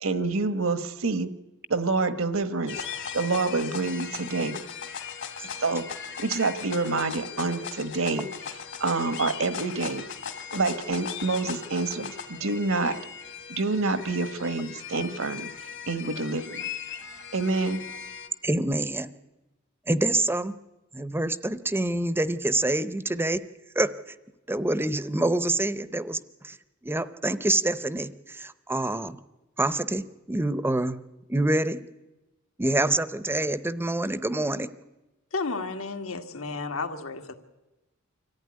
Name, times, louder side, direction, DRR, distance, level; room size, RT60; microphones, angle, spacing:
voice 1, 0.0-1.3 1.7-2.8 3.1-4.6 5.6-5.9 6.2-8.3 8.8-10.1 10.5-13.0 13.5-15.5 15.9-16.6 17.3-17.8, right 3 dB, 75° right, 12 dB, 1.2 m, -27 dB
sound 1, 2.7-18.3, left 7 dB, 60° left, 1.9 m, -38 dB
voice 2, 18.4-19.1 19.9-20.5 20.9-23.4 23.8-23.9 24.5-26.6 26.8-29.2 29.6-31.0 31.3-31.8 32.6-34.7, right 2 dB, 10° right, 14 dB, 0.7 m, -26 dB
voice 3, 35.3-37.3, left 3 dB, 80° left, 5 dB, 1.9 m, -32 dB
25.0 x 14.5 x 9.7 m, 1.1 s
head